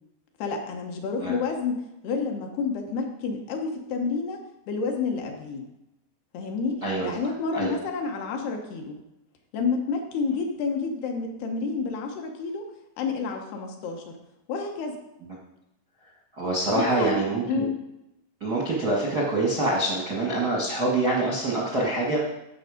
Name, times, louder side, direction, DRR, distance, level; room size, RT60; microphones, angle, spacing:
voice 1, 0.4-4.4 4.7-5.7 6.3-9.0 9.5-12.7 13.0-14.1 14.5-15.0 16.8-17.2 17.4-17.8, left 4 dB, 70° left, 3 dB, 2.9 m, -29 dB
voice 2, 16.3-17.6 18.4-22.3, right 2 dB, 65° right, -3 dB, 0.9 m, -25 dB
15.0 x 5.7 x 5.1 m, 0.90 s
omnidirectional pair, 5.2 m